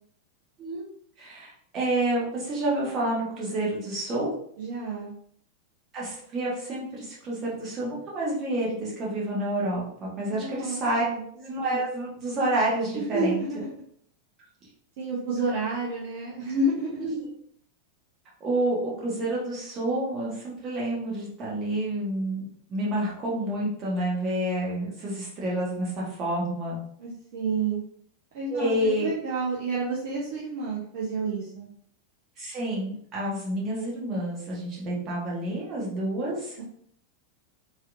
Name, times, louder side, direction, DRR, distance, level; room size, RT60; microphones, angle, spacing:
voice 1, 1.2-4.3 5.9-11.0 11.3-13.4 17.0-17.2 18.4-22.4 22.7-26.8 28.5-29.1 32.4-36.6, right 1 dB, 30° right, -5 dB, 1.4 m, -29 dB
voice 2, 4.6-5.1 10.3-11.2 12.9-13.7 15.0-17.0 27.0-27.8 28.3-31.7 36.6-36.7, right 2 dB, 50° right, -5 dB, 0.7 m, -30 dB
3.2 x 2.9 x 2.5 m, 0.64 s
figure-of-eight pair, 90°, 0 cm